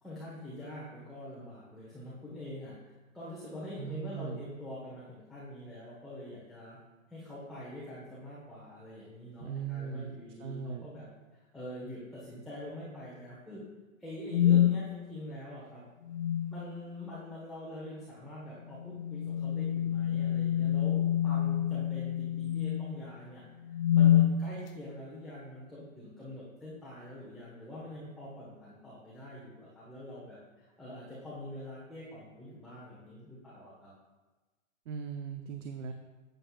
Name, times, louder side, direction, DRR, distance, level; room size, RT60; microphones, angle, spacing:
voice 1, 0.0-2.7 3.1-6.8 7.1-11.1 11.5-13.6 14.0-15.8 16.5-23.4 23.9-33.9, left 1 dB, ahead, -8 dB, 1.4 m, -45 dB
voice 2, 3.8-4.5 9.4-10.1 10.4-10.9 34.9-35.9, right 6 dB, 65° right, 6 dB, 0.7 m, -39 dB
sound 1, 14.3-14.8 16.1-16.6 18.8-23.0 23.7-24.3, left 11 dB, 35° left, 0.4 m, -27 dB
11.0 x 7.9 x 2.4 m, 1.2 s
hypercardioid pair, 125°, 41 cm